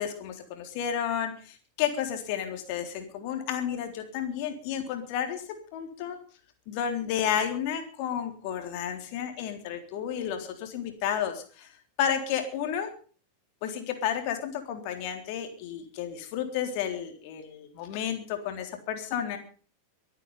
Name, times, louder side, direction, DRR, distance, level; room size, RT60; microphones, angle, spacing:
voice 1, 0.0-6.2 6.7-11.7 12.0-12.9 13.6-19.4, left 9 dB, 45° left, 6 dB, 3.6 m, -32 dB
23.0 x 9.4 x 5.5 m, 0.41 s
figure-of-eight pair, 90°, 0 cm